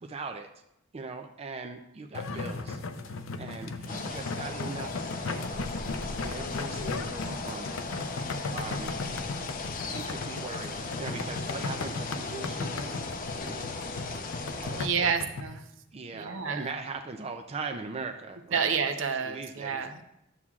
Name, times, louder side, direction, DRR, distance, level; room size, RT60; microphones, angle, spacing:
voice 1, 0.0-0.5 0.9-2.8 3.1-5.7 6.2-7.7 8.5-8.9 9.9-13.1 13.4-13.7 14.6-15.1 15.9-19.8, right 4 dB, 30° right, 5 dB, 0.4 m, -40 dB
sound 1, 2.1-15.4, left 3 dB, 85° left, 0.6 m, -37 dB
sound 2, 3.9-14.9, left 3 dB, 45° left, 0.6 m, -37 dB
voice 2, 14.8-15.6 16.1-16.7 18.5-20.0, right 6 dB, 70° right, 6 dB, 0.7 m, -29 dB
11.0 x 7.2 x 2.4 m, 0.82 s
head